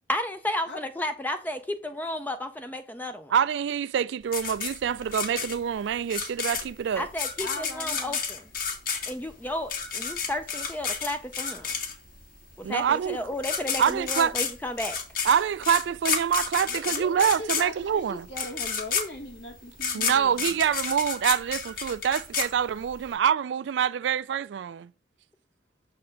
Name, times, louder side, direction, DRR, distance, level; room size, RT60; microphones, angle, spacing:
voice 1, 0.1-3.3 6.9-8.4 9.1-9.7 10.0-11.7 12.6-15.0, left 1 dB, 10° left, 0.4 m, -32 dB
voice 2, 3.3-7.1 12.6-13.2 13.8-14.3 15.2-18.3 19.9-24.9, right 8 dB, 70° right, 0.3 m, -26 dB
sound 1, 4.3-12.2 13.1-13.2 13.4-23.1, left 6 dB, 50° left, 1.6 m, -30 dB
voice 3, 7.4-8.2 16.7-20.7, left 2 dB, 70° left, 1.5 m, -39 dB
6.7 x 4.3 x 5.1 m
head